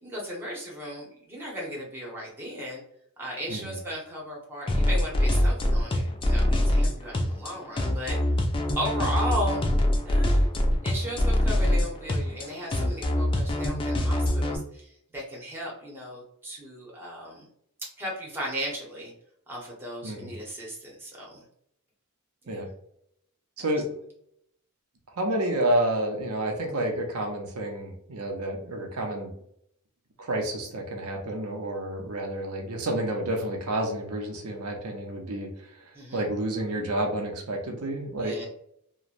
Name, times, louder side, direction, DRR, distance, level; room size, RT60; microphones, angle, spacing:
voice 1, 0.0-2.8 3.2-8.2 8.8-9.6 10.0-10.5 10.8-17.5 18.0-19.1 19.5-21.4 22.4-22.7 23.6-23.7 35.9-36.2 38.2-38.5, equal, 10° right, -3 dB, 0.9 m, -36 dB
sound 1, 4.7-14.6, left 1 dB, 25° left, 0.3 m, -24 dB
voice 2, 20.0-20.3 22.5-22.7 23.6-23.9 25.2-29.3 30.2-35.5 36.1-38.3, right 1 dB, 85° right, 1 dB, 0.7 m, -29 dB
3.0 x 2.1 x 2.5 m, 0.70 s
head